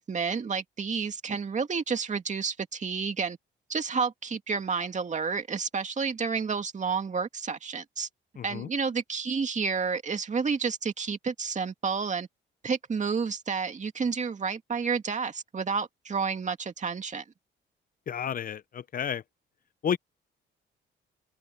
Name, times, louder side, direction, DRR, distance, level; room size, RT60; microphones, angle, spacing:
voice 1, 0.0-3.4 3.7-8.1 8.4-12.3 12.6-17.2, right 5 dB, 35° right, 2.3 m, -30 dB
voice 2, 8.4-8.7 18.1-19.2 19.8-20.0, left 8 dB, 45° left, 0.6 m, -31 dB
cardioid pair, 90°, 20 cm